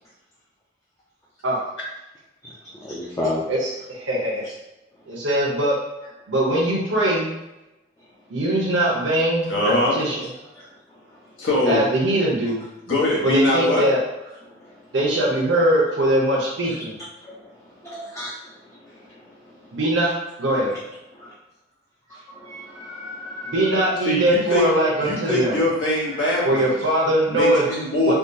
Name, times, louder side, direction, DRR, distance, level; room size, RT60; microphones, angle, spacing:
voice 1, 2.4-3.4 10.5-11.3 14.5-14.9 16.6-16.7 17.2-19.8 20.6-20.8 21.1-21.3 22.1-23.9 26.1-26.8, left 1 dB, 15° left, -5 dB, 0.4 m, -35 dB
voice 2, 3.5-4.4 5.1-5.7 6.3-7.3 8.3-10.3 11.7-12.6 13.2-14.0 14.9-17.0 19.7-20.1 20.4-20.7 23.4-25.6 26.4-27.6 28.0-28.1, right 1 dB, 80° right, -5 dB, 0.7 m, -21 dB
voice 3, 9.5-10.0 11.4-11.8 12.9-13.8 24.0-24.7 25.0-26.8 27.3-28.1, left 1 dB, 80° left, -4 dB, 1.1 m, -22 dB
3.6 x 2.3 x 2.6 m, 0.95 s
head